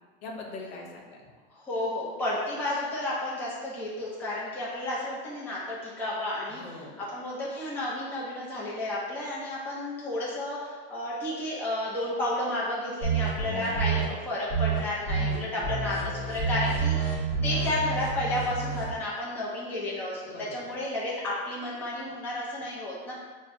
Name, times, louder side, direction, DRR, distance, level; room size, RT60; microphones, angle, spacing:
voice 1, 0.2-1.3 6.5-7.1 15.1-15.7 20.3-20.8, left 2 dB, 85° left, 0 dB, 0.9 m, -43 dB
voice 2, 1.5-23.1, left 1 dB, 5° left, -7 dB, 0.4 m, -32 dB
sound 1, 13.0-14.0 14.5-14.8 15.1-15.4 15.6-18.9, right 5 dB, 30° right, 1.2 m, -28 dB
6.0 x 2.1 x 2.5 m, 1.3 s
supercardioid pair, 170°, 31 cm